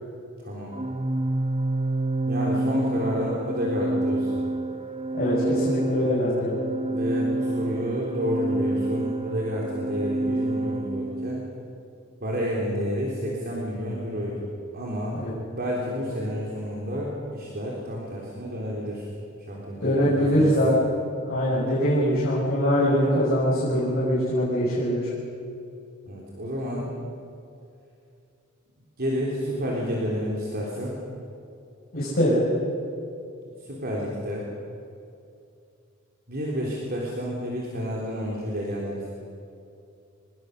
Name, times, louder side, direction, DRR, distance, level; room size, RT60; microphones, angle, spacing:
voice 1, 0.4-0.8 2.3-4.5 6.9-11.4 12.2-14.5 14.7-15.2 15.5-19.1 19.5-20.7 26.1-26.9 29.0-31.0 33.6-34.5 36.3-39.1, equal, 50° right, -4 dB, 3.6 m, -30 dB
Organ, 0.7-11.5, right 2 dB, 30° right, 1.1 m, -28 dB
voice 2, 5.1-6.6 15.1-15.3 19.8-20.7 21.3-25.1 31.9-32.4, equal, 45° left, -8 dB, 6.3 m, -23 dB
24.5 x 21.0 x 6.7 m, 2.6 s
head